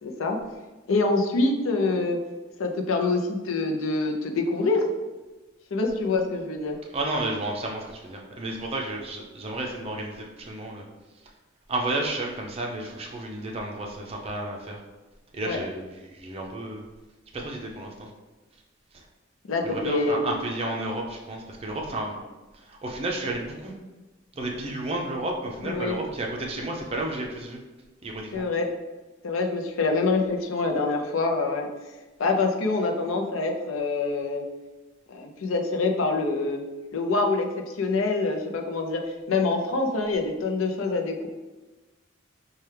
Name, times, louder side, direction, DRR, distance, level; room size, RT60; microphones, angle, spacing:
voice 1, 0.0-0.4 0.9-2.2 2.6-4.9 5.7-6.8 15.4-15.6 19.5-20.3 25.6-26.0 28.3-28.7 29.2-31.7 32.2-34.5 35.1-36.6 36.9-39.0 39.3-41.3, left 3 dB, 85° left, 3 dB, 0.5 m, -25 dB
voice 2, 6.9-10.8 11.7-14.8 15.3-16.8 17.3-18.1 18.9-19.0 19.6-22.2 22.5-23.8 24.3-27.6 28.0-28.5, right 2 dB, 30° right, 0 dB, 0.5 m, -32 dB
4.4 x 2.3 x 3.3 m, 1.2 s
head